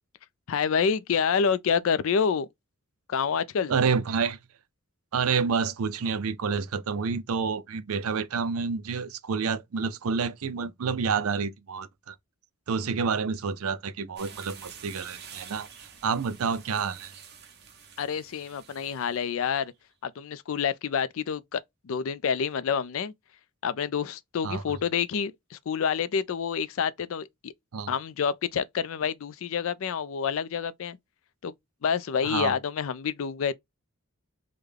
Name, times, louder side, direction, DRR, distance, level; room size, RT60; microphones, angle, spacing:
voice 1, 0.5-2.5 3.1-3.7 18.0-19.7 20.0-23.1 23.6-27.5 27.9-31.0 31.4-31.5 31.8-33.5, left 6 dB, 65° left, 0.4 m, -28 dB
voice 2, 3.7-4.4 5.1-12.1 12.7-15.7 16.0-17.1 24.4-24.6 27.7-27.9 32.2-32.6, right 5 dB, 75° right, 0.5 m, -28 dB
sound 1, 14.2-19.3, right 7 dB, 45° right, 0.8 m, -48 dB
3.6 x 2.2 x 3.2 m
head